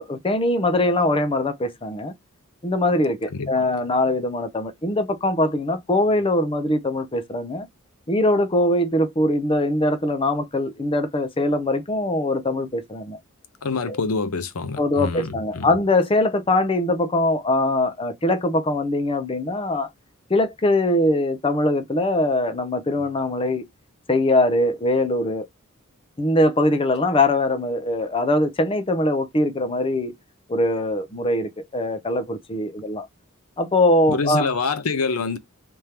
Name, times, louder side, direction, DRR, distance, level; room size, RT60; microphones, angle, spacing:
voice 1, 0.0-2.1 2.6-7.7 8.1-13.2 13.9-14.0 14.8-19.9 20.3-23.6 24.1-25.5 26.2-30.1 30.5-33.1 33.6-34.5, left 1 dB, 25° left, 0.6 m, -22 dB
voice 2, 13.6-15.7 34.1-35.4, left 4 dB, 90° left, 0.7 m, -26 dB
3.5 x 3.3 x 2.9 m
head